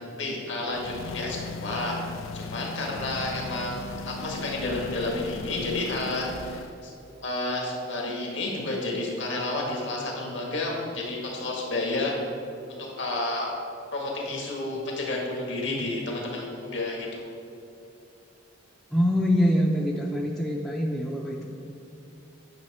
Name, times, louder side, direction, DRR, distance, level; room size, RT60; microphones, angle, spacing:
voice 1, 0.0-2.0 2.3-3.8 4.1-6.9 7.2-12.1 12.7-13.5 13.9-16.4 16.7-17.3, left 2 dB, 65° left, -2 dB, 1.7 m, -30 dB
sound 1, 0.7-6.8, left 4 dB, 85° left, 0.4 m, -38 dB
voice 2, 18.9-21.5, equal, ahead, -1 dB, 0.5 m, -24 dB
9.5 x 6.3 x 4.2 m, 2.8 s
head